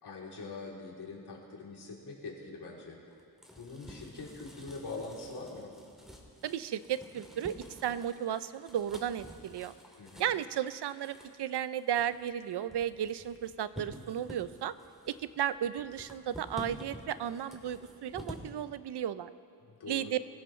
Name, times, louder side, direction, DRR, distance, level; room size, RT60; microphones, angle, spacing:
voice 1, 0.0-3.0 3.6-5.7 10.0-10.3 19.7-20.1, left 3 dB, 85° left, -3 dB, 3.4 m, -43 dB
sound 1, 3.1-18.5, equal, ahead, 2.3 m, -50 dB
voice 2, 6.4-7.6 7.8-9.7 10.2-14.7 15.1-19.3 19.9-20.2, right 10 dB, 90° right, 14 dB, 0.6 m, -34 dB
26.0 x 16.5 x 3.2 m, 2.3 s
wide cardioid pair, 110°, 39 cm